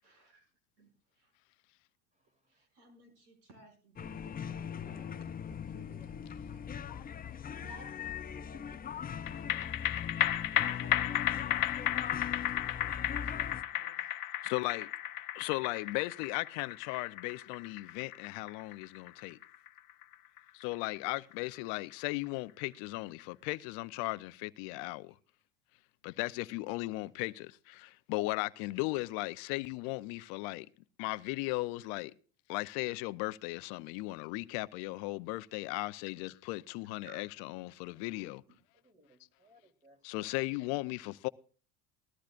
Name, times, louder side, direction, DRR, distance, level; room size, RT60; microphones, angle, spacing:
voice 1, 0.0-0.5 0.8-1.3 2.5-6.7 7.6-9.5 10.5-12.9 13.2-14.1 37.0-37.3 38.5-38.6, right 3 dB, 75° right, 6.7 m, -58 dB
voice 2, 2.1-2.7 38.7-40.3, right 1 dB, 15° right, 3.2 m, -66 dB
sound 1, 4.0-13.6, left 8 dB, 20° left, 0.5 m, -40 dB
sound 2, 9.3-21.9 22.3-22.4, left 13 dB, 50° left, 1.1 m, -34 dB
voice 3, 14.4-14.9 15.3-19.4 20.5-25.1 26.0-30.7 31.0-32.1 32.5-38.4 40.0-41.3, left 21 dB, 70° left, 0.7 m, -37 dB
19.5 x 13.5 x 2.5 m
supercardioid pair, 85°, 42 cm